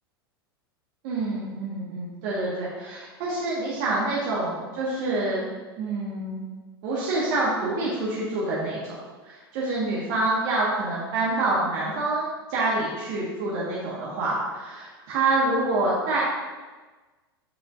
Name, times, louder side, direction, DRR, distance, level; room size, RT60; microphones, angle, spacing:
voice 1, 1.0-5.5 5.8-6.5 6.8-8.9 9.2-16.2, right 2 dB, 50° right, -6 dB, 1.7 m, -27 dB
7.8 x 7.6 x 2.6 m, 1.3 s
figure-of-eight pair, 90°, 13 cm